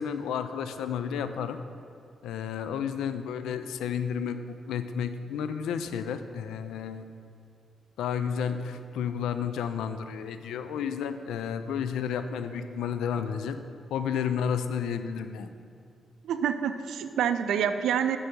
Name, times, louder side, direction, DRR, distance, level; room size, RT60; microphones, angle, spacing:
voice 1, 0.0-1.6 2.2-4.4 4.7-7.1 8.0-13.6 13.9-15.5, left 7 dB, 80° left, 10 dB, 0.3 m, -31 dB
voice 2, 16.2-18.2, right 8 dB, 75° right, 10 dB, 0.3 m, -27 dB
6.4 x 5.3 x 5.4 m, 2.4 s
hypercardioid pair, 45°, 0 cm